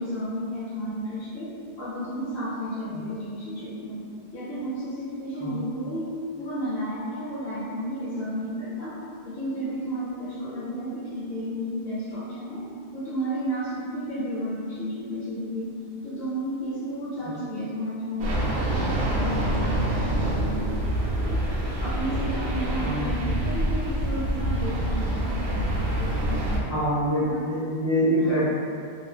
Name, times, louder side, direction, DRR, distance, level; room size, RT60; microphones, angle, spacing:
voice 1, 0.0-4.0 4.3-9.0 9.2-12.7 12.9-15.7 16.0-20.8 21.1-21.4 21.8-26.7 27.2-27.4 28.2-28.4, equal, 65° left, -10 dB, 0.9 m, -32 dB
sound 1, 18.2-26.6, right 1 dB, 75° right, 0.8 m, -26 dB
voice 2, 26.7-28.4, equal, 25° left, -11 dB, 1.1 m, -25 dB
3.0 x 2.6 x 2.3 m, 2.2 s
omnidirectional pair, 1.1 m